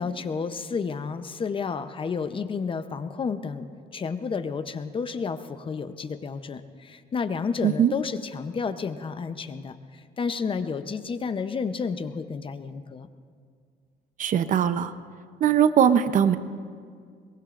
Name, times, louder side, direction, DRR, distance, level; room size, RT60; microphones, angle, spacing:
voice 1, 0.0-3.7 3.9-13.1, left 5 dB, 30° left, 10 dB, 0.7 m, -31 dB
voice 2, 7.6-7.9 14.2-14.9 15.4-16.4, right 9 dB, 50° right, 12 dB, 0.7 m, -20 dB
22.5 x 22.5 x 2.5 m, 2.1 s
cardioid pair, 110°, 17 cm